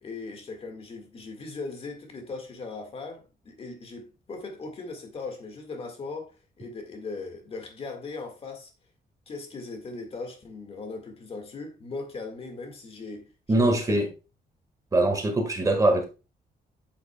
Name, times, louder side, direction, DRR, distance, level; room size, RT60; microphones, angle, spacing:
voice 1, 0.0-8.7 9.3-14.0, left 3 dB, 35° left, 1.8 m, -39 dB
voice 2, 13.5-14.1 14.9-16.1, right 2 dB, 20° right, 1.7 m, -22 dB
7.9 x 7.7 x 2.3 m
wide cardioid pair, 165°, 16 cm